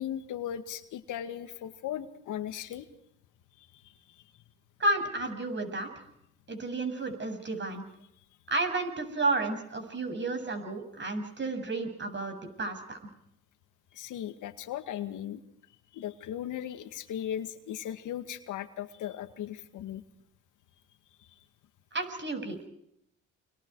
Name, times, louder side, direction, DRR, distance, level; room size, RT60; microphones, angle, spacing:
voice 1, 0.0-2.9 3.6-4.2 13.9-15.4 15.9-20.0 21.2-21.3, left 10 dB, 85° left, 9 dB, 2.1 m, -37 dB
voice 2, 4.8-5.9 6.5-7.8 8.5-13.0 21.9-22.7, right 2 dB, 40° right, 5 dB, 7.7 m, -32 dB
29.5 x 26.0 x 4.8 m, 0.75 s
cardioid pair, 90°, 30 cm